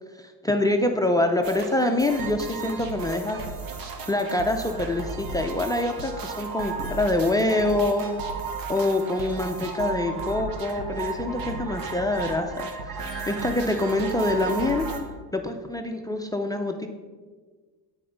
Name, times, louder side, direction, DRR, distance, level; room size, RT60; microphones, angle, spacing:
voice 1, 0.2-3.4 4.1-8.1 8.7-12.5 12.8-14.8 15.3-16.9, left 2 dB, 10° left, 6 dB, 0.4 m, -25 dB
sound 1, 1.4-15.0, right 4 dB, 60° right, 1.1 m, -34 dB
9.6 x 4.3 x 5.0 m, 1.4 s
cardioid pair, 125°, 40 cm